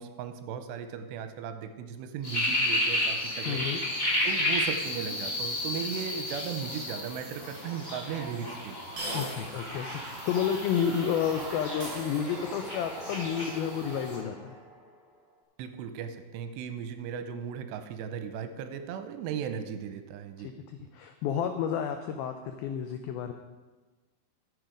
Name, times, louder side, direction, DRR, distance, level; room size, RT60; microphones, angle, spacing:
voice 1, 0.0-3.7 4.2-8.8 9.1-9.3 15.6-20.5, right 7 dB, 85° right, 8 dB, 2.9 m, -37 dB
sound 1, 2.2-14.1, left 1 dB, 20° left, 3.1 m, -33 dB
voice 2, 3.5-3.8 9.1-14.6 20.9-23.3, left 8 dB, 90° left, 6 dB, 2.1 m, -30 dB
sound 2, 7.5-7.6 9.0-9.7 10.0-10.1 11.8-12.7, right 1 dB, 40° right, 4.9 m, -39 dB
sound 3, 9.5-15.2, right 2 dB, 25° right, 1.4 m, -43 dB
12.5 x 7.8 x 5.1 m, 1.3 s
omnidirectional pair, 5.0 m